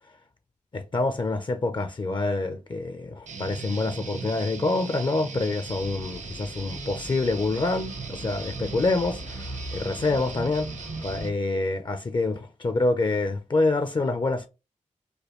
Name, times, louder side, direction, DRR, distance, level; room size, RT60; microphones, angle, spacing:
voice 1, 0.7-10.7 11.0-14.5, left 2 dB, 40° left, 0.5 m, -26 dB
Guitar, 3.3-11.3, right 5 dB, 70° right, 0.7 m, -38 dB
sound 1, 5.7-11.3, left 1 dB, 90° left, 1.6 m, -42 dB
5.0 x 2.2 x 3.0 m
wide cardioid pair, 95°, 13 cm